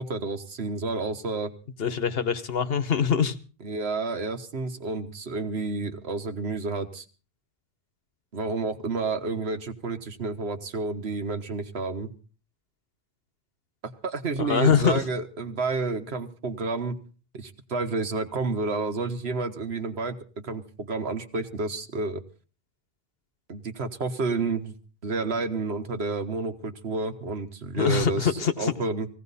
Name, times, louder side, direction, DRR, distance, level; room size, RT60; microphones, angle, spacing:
voice 1, 0.0-1.5 3.6-7.0 8.3-12.1 13.8-17.0 17.3-22.2 23.5-24.7 25.0-29.1, right 3 dB, 70° right, 8 dB, 1.5 m, -30 dB
voice 2, 1.8-3.4 14.4-15.0 27.7-28.7, left 7 dB, 60° left, 12 dB, 1.2 m, -23 dB
19.0 x 16.5 x 4.1 m, 0.37 s
omnidirectional pair, 1.1 m